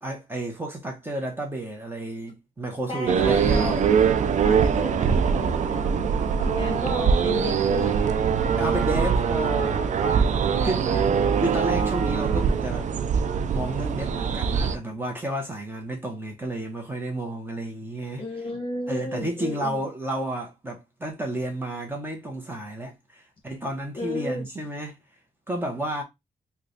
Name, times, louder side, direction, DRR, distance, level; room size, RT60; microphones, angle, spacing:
voice 1, 0.0-3.8 5.7-6.4 8.5-10.0 10.6-10.9 11.4-12.9 13.5-18.2 18.9-25.0 25.5-26.0, right 1 dB, 15° right, 0.8 m, -31 dB
voice 2, 2.9-3.8 4.5-6.0 6.4-8.0 8.4-8.5 10.0-10.1 10.6-11.1 18.2-19.8 23.9-24.5, left 1 dB, 40° left, 1.3 m, -33 dB
sound 1, 3.1-14.8, right 6 dB, 65° right, 0.4 m, -23 dB
3.0 x 2.3 x 3.9 m
wide cardioid pair, 145°, 13 cm